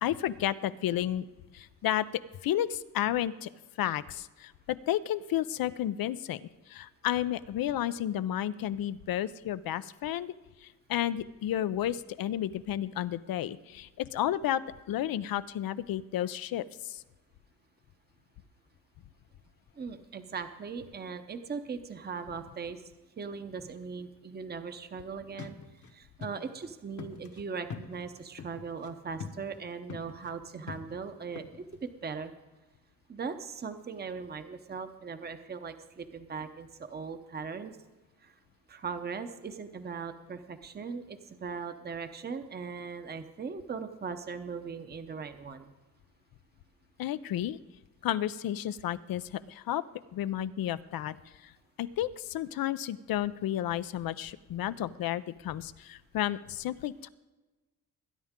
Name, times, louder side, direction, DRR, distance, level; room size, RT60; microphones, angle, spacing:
voice 1, 0.0-1.3 1.5-2.1 2.4-3.5 3.8-10.3 10.6-14.6 14.9-17.0 47.0-47.6 48.0-49.8 50.1-51.2 51.4-51.5 51.8-57.1, left 12 dB, 85° left, 15 dB, 0.6 m, -32 dB
voice 2, 19.8-22.8 23.2-25.6 25.9-32.3 33.1-37.7 38.2-38.3 38.7-45.7, right 5 dB, 30° right, 8 dB, 0.8 m, -39 dB
sound 1, 25.4-25.9 26.2-26.3 26.6-26.7 27.0-28.9 29.2-29.6 29.9-30.3 30.7-31.9, left 6 dB, 60° left, 1.3 m, -43 dB
21.0 x 10.0 x 3.7 m, 1.2 s
cardioid pair, 120°, 34 cm